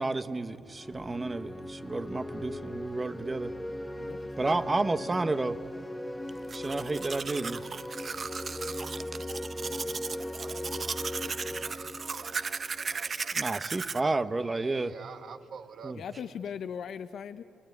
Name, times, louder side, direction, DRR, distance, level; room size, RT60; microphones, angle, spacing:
voice 1, 0.0-3.5 4.4-5.6 6.5-7.6 13.3-14.9 15.8-16.0, right 3 dB, 25° right, 11 dB, 1.0 m, -31 dB
sound 1, 0.7-13.3, left 1 dB, 10° left, 1.1 m, -39 dB
voice 2, 3.9-5.3 15.9-17.4, left 7 dB, 65° left, 10 dB, 0.7 m, -40 dB
Domestic sounds home sounds, 6.3-14.0, right 5 dB, 40° right, 0.6 m, -36 dB
voice 3, 9.9-13.8 14.6-16.0, right 6 dB, 60° right, 8 dB, 1.4 m, -49 dB
30.0 x 20.0 x 9.7 m, 2.7 s
cardioid pair, 90°, 0 cm